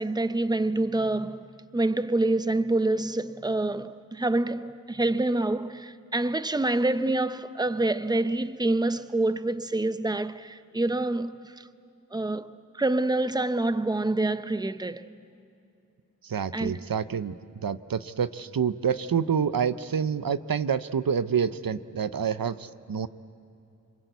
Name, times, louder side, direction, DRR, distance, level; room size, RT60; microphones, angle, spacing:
voice 1, 0.0-1.4 1.7-11.4 12.1-12.5 12.8-15.1 16.5-16.8, right 2 dB, 10° right, 0.7 m, -26 dB
voice 2, 16.2-17.3 17.6-23.1, right 7 dB, 85° right, 0.7 m, -27 dB
26.5 x 24.5 x 8.1 m
wide cardioid pair, 60°, 34 cm